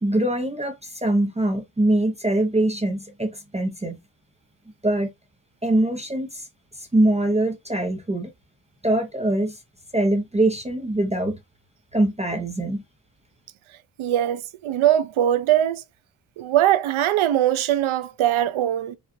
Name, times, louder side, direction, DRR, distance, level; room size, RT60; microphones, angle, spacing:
voice 1, 0.0-4.0 4.8-5.1 5.6-6.5 6.8-8.3 8.8-9.6 9.9-11.4 11.9-12.8, right 1 dB, 15° right, 0.7 m, -23 dB
voice 2, 14.0-15.8 16.4-19.0, right 12 dB, 85° right, 0.6 m, -21 dB
4.8 x 2.4 x 2.6 m
cardioid pair, 90°, 47 cm